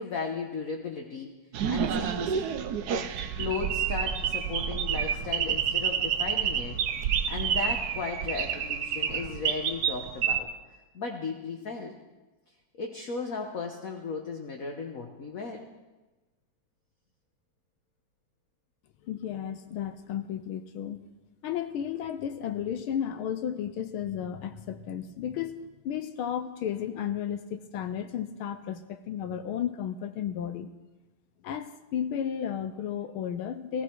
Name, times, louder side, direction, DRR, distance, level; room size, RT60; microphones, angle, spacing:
voice 1, 0.0-1.3 1.7-2.6 3.4-6.8 7.3-10.5 10.9-12.0 12.8-15.7, left 4 dB, 45° left, 1 dB, 1.3 m, -35 dB
sound 1, 1.5-10.4, right 8 dB, 65° right, 1.0 m, -29 dB
voice 2, 19.0-21.0 21.4-30.7 31.4-33.8, left 9 dB, 75° left, 10 dB, 1.5 m, -33 dB
16.0 x 16.0 x 4.6 m, 1.2 s
omnidirectional pair, 2.4 m